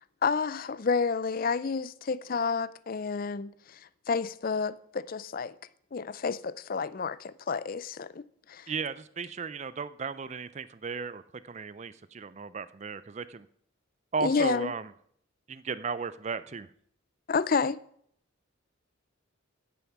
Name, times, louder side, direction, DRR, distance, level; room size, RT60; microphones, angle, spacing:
voice 1, 0.2-3.8 4.1-5.5 5.9-8.2 8.5-8.7 14.2-14.7 17.3-17.8, left 5 dB, 40° left, 0.4 m, -30 dB
voice 2, 8.7-13.5 14.1-14.9 15.5-16.7, right 5 dB, 30° right, 0.4 m, -35 dB
16.0 x 7.0 x 5.9 m
head